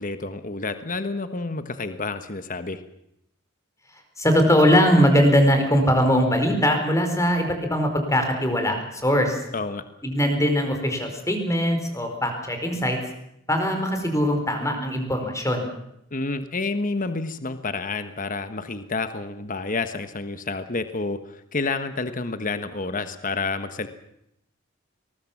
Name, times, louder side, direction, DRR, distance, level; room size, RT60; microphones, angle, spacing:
voice 1, 0.0-2.8 9.5-9.8 16.1-23.9, left 3 dB, 40° left, 10 dB, 1.4 m, -29 dB
voice 2, 3.9-9.4 10.0-13.0 13.5-15.6, equal, 15° left, 5 dB, 4.7 m, -21 dB
23.0 x 20.0 x 7.3 m, 0.77 s
head